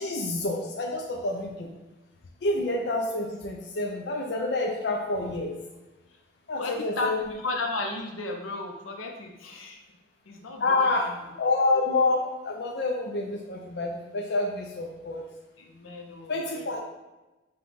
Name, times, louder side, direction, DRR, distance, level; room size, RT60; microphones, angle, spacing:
voice 1, 0.0-1.7 2.4-5.5 6.5-7.2 10.6-11.1 11.4-15.3 16.3-16.8, left 2 dB, 55° left, 0 dB, 0.4 m, -28 dB
voice 2, 6.6-9.8 10.3-11.3 15.6-16.7, left 2 dB, 90° left, 2 dB, 0.7 m, -34 dB
5.1 x 2.3 x 3.9 m, 1.1 s
head